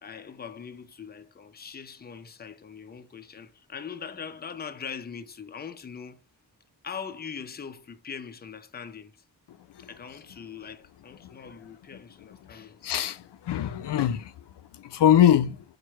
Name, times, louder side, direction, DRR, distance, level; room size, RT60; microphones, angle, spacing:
voice 1, 0.0-6.2 6.8-9.2 9.8-12.9, left 6 dB, 25° left, 0.4 m, -41 dB
voice 2, 12.8-14.3 14.8-15.6, left 10 dB, 85° left, 0.5 m, -22 dB
4.6 x 2.3 x 4.3 m
wide cardioid pair, 115°, 40 cm